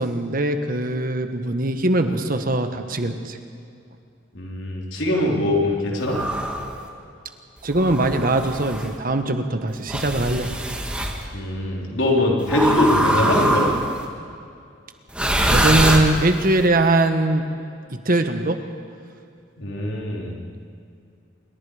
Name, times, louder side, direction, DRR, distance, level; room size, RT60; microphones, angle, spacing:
voice 1, 0.0-3.4 7.6-10.5 15.5-17.4 17.9-18.6, right 2 dB, 50° right, 7 dB, 1.4 m, -21 dB
voice 2, 4.3-6.2 11.3-13.7 19.6-20.3, left 1 dB, 75° left, -2 dB, 4.3 m, -22 dB
sound 1, 6.1-6.7 7.7-8.9 9.9-11.2 12.5-14.0 15.1-16.5, right 1 dB, 5° right, 1.9 m, -23 dB
27.0 x 22.5 x 5.1 m, 2.4 s
head